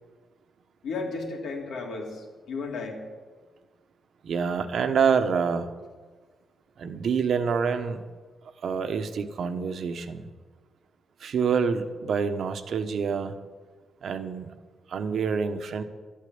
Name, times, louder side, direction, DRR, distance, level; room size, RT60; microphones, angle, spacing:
voice 1, 0.8-3.0, left 3 dB, 90° left, 0 dB, 3.2 m, -34 dB
voice 2, 4.2-5.7 6.8-8.0 8.6-10.3 11.2-13.3 14.0-14.5 14.9-15.8, right 6 dB, 65° right, 9 dB, 1.1 m, -27 dB
13.0 x 8.6 x 9.5 m, 1.4 s
cardioid pair, 115°, 0 cm